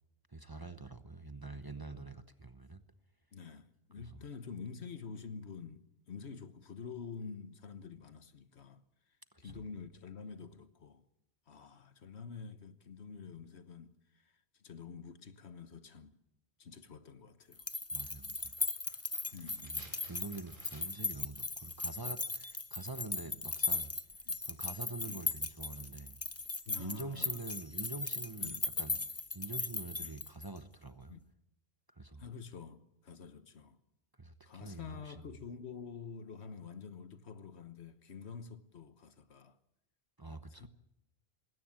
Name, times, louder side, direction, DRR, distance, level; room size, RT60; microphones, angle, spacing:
voice 1, 0.3-2.8 4.0-4.2 9.4-9.6 17.9-18.6 19.6-23.9 24.4-26.2 26.8-29.0 29.3-31.2 32.0-32.2 34.2-35.2 40.2-40.7, right 3 dB, 20° right, 0.9 m, -45 dB
voice 2, 3.3-8.8 9.4-11.0 11.5-16.1 16.6-17.6 19.3-19.8 24.3-24.4 25.1-25.2 26.6-27.4 28.4-28.6 30.0-30.1 31.1-31.2 32.2-33.8 34.4-39.6 40.5-40.7, left 5 dB, 75° left, 1.5 m, -48 dB
sound 1, 17.5-30.6, left 3 dB, 15° left, 0.6 m, -38 dB
sound 2, 18.3-21.2 21.4-21.5, right 1 dB, 50° right, 3.4 m, -58 dB
20.5 x 17.5 x 8.8 m
omnidirectional pair, 1.1 m